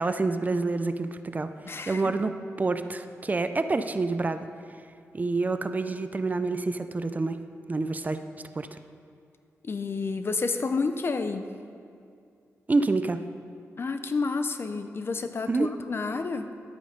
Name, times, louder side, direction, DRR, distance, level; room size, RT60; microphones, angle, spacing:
voice 1, 0.0-1.5 1.9-4.4 5.1-7.4 7.7-8.2 8.6-8.8 12.7-13.2 15.5-15.7, right 3 dB, 30° right, 10 dB, 0.5 m, -27 dB
voice 2, 1.6-2.1 9.6-11.5 13.8-16.5, left 4 dB, 45° left, 9 dB, 0.7 m, -30 dB
11.0 x 8.6 x 5.1 m, 2.5 s
cardioid pair, 85°, 5 cm